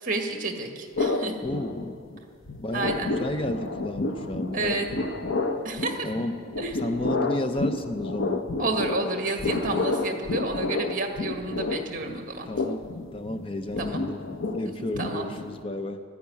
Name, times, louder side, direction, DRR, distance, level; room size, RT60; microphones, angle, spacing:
voice 1, 0.0-1.3 2.7-3.2 4.5-4.9 5.6-6.1 6.6-6.7 8.6-12.5 13.8-14.0 14.6-14.7 15.0-15.3, right 2 dB, 45° right, 4 dB, 1.8 m, -30 dB
sound 1, 0.9-2.2 2.5-15.6, left 3 dB, 80° left, 1.0 m, -30 dB
voice 2, 1.4-2.0 2.6-5.1 6.0-6.4 6.8-8.4 12.4-12.9 13.1-14.2 14.5-16.0, left 1 dB, 25° left, 7 dB, 0.6 m, -32 dB
13.5 x 10.5 x 9.7 m, 2.2 s
head